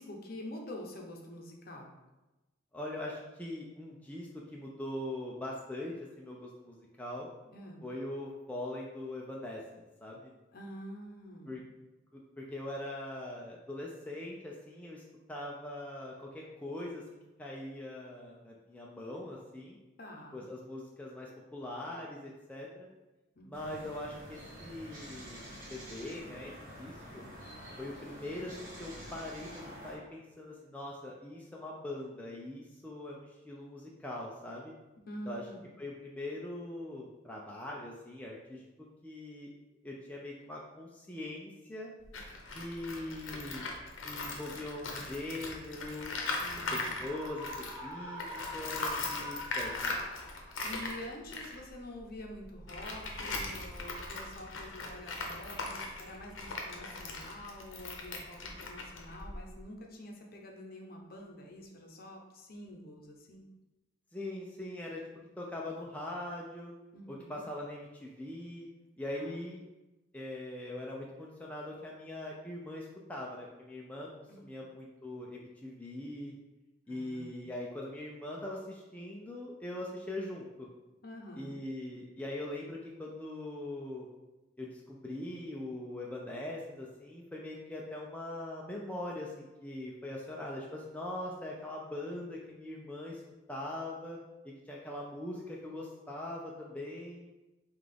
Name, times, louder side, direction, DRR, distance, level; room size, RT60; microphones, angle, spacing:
voice 1, 0.0-1.9 7.5-7.8 10.5-11.7 20.0-20.4 23.4-23.8 35.0-35.7 46.4-47.0 50.6-63.4 66.9-67.4 69.2-69.4 74.3-74.4 76.9-77.4 81.0-81.6, left 1 dB, 50° left, 1 dB, 0.7 m, -47 dB
voice 2, 2.7-7.3 7.8-10.3 11.5-11.6 12.1-15.0 15.3-19.8 20.3-22.9 23.4-25.4 25.7-26.5 26.8-27.2 27.8-34.7 35.3-35.4 35.8-38.6 39.0-39.5 39.8-41.9 42.5-43.7 44.0-46.2 46.7-47.5 47.8-48.3 48.5-50.0 64.1-65.0 65.4-66.7 67.1-68.7 69.0-69.6 70.1-76.3 76.9-80.7 81.4-84.1 84.6-93.2 93.5-94.2 94.4-97.3, left 1 dB, 5° left, -3 dB, 0.4 m, -42 dB
sound 1, 23.5-30.0, equal, 45° right, 1.4 m, -48 dB
Tools, 42.0-47.9 48.2-59.6, left 3 dB, 90° left, 0.7 m, -39 dB
Screaming, 46.9-50.6, left 1 dB, 15° right, 0.9 m, -44 dB
5.6 x 2.4 x 3.3 m, 1.1 s
head